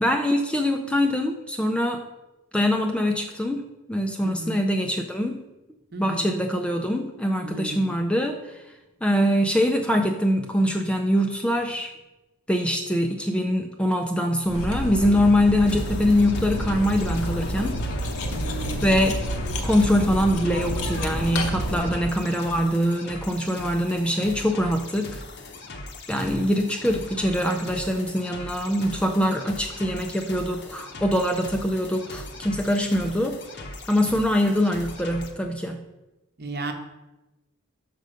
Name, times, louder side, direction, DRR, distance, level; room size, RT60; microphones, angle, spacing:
voice 1, 0.0-2.0 2.5-5.4 6.0-8.6 9.0-11.9 12.5-17.8 18.8-19.3 19.6-25.2 26.1-33.4 33.9-35.8, equal, 5° left, 4 dB, 0.3 m, -23 dB
voice 2, 4.2-4.6 5.9-6.3 7.4-7.9 18.3-19.1 36.4-36.7, right 2 dB, 45° right, 4 dB, 0.9 m, -34 dB
Cutlery silverware, 14.4-22.2, equal, 90° left, 0.9 m, -29 dB
sound 1, 15.7-35.3, left 2 dB, 50° left, 0.7 m, -40 dB
6.6 x 5.2 x 4.9 m, 1.0 s
head